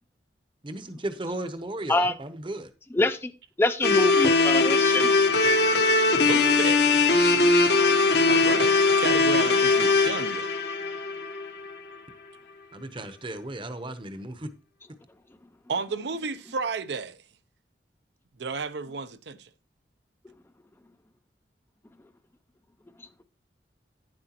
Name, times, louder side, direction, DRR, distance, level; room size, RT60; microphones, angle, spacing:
voice 1, 0.6-2.7 4.2-4.3 12.7-14.5, right 1 dB, 30° right, 0.8 m, -35 dB
voice 2, 2.9-3.3 3.6-5.1, left 2 dB, 15° left, 0.4 m, -25 dB
sound 1, 3.8-11.9, left 3 dB, 65° left, 1.0 m, -21 dB
voice 3, 6.2-10.5 15.7-17.2 18.4-19.5, right 4 dB, 75° right, 0.6 m, -33 dB
10.0 x 7.8 x 2.9 m
head